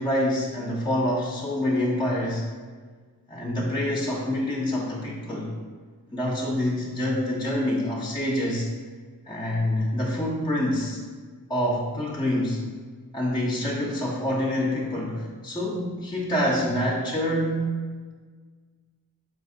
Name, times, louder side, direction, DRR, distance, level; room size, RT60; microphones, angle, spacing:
voice 1, 0.0-2.5 3.3-5.6 6.1-8.7 9.3-11.0 11.5-12.6 13.1-17.8, left 1 dB, 15° left, -3 dB, 0.5 m, -26 dB
4.1 x 3.2 x 2.6 m, 1.5 s
cardioid pair, 65°, 36 cm